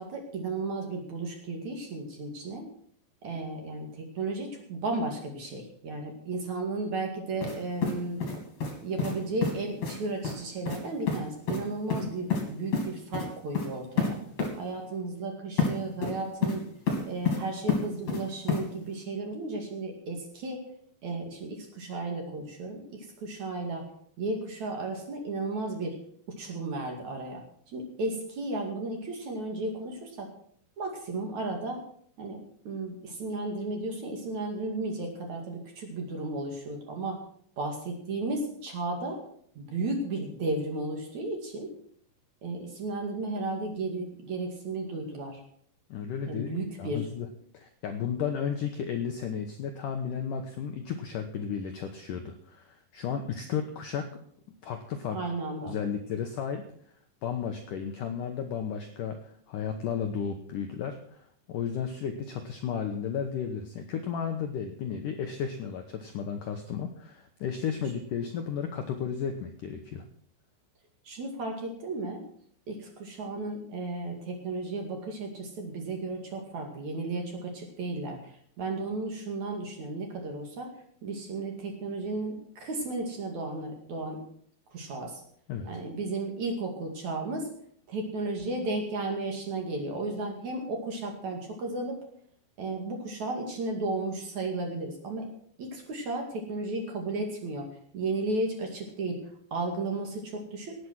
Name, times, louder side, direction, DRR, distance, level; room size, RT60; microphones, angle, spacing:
voice 1, 0.0-2.7 3.2-8.3 8.8-14.2 14.6-16.7 17.0-20.6 21.0-23.9 24.2-26.0 26.3-30.3 30.8-31.8 32.2-32.4 32.6-37.2 37.6-39.2 39.6-41.7 42.4-45.4 46.2-47.1 55.1-55.7 71.0-72.2 72.7-80.7 81.0-84.2 84.7-85.2 85.6-87.5 87.9-92.0 92.6-95.3 95.6-100.7, right 2 dB, 45° right, 2 dB, 3.0 m, -34 dB
sound 1, 7.4-7.6 7.8-8.7 9.0-9.1 9.4-9.5 9.8-10.0 10.2-10.4 10.7-10.8 11.1-11.2 11.5-11.6 11.9-12.4 12.7-12.9 13.1-13.3 13.5-13.7 14.0-14.1 14.4-14.5 15.6-15.7 16.0-16.6 16.9-17.4 17.7-18.2 18.5-18.6, left 5 dB, 40° left, 3.7 m, -28 dB
voice 2, 45.9-47.3 47.5-54.1 54.6-55.2 55.7-56.6 57.2-61.2 61.5-70.0 85.5-85.7, left 7 dB, 85° left, 5 dB, 1.8 m, -33 dB
18.0 x 8.4 x 6.2 m, 0.63 s
omnidirectional pair, 5.4 m